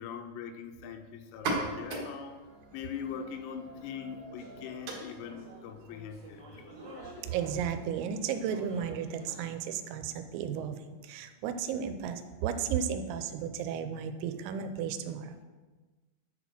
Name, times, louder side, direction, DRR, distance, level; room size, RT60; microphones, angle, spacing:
voice 1, 0.0-2.4 2.7-6.5, left 7 dB, 85° left, 6 dB, 3.4 m, -41 dB
sound 1, 1.3-8.7, right 2 dB, 60° right, 2.6 m, -41 dB
sound 2, 4.4-9.5, equal, 25° right, 0.9 m, -50 dB
voice 2, 7.3-15.4, right 8 dB, 85° right, 9 dB, 3.3 m, -34 dB
10.5 x 4.1 x 6.0 m, 1.3 s
omnidirectional pair, 5.9 m